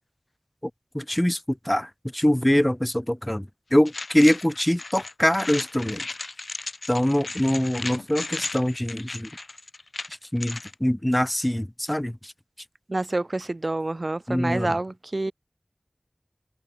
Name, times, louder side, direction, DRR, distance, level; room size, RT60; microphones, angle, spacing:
voice 1, 0.9-3.4 3.7-6.0 6.9-9.3 10.3-12.3 14.3-14.8, left 1 dB, 15° left, 1.1 m, -23 dB
sound 1, 3.9-10.7, left 3 dB, 90° left, 2.6 m, -35 dB
voice 2, 12.9-15.3, right 2 dB, 55° right, 1.3 m, -28 dB
wide cardioid pair, 50°, 0 cm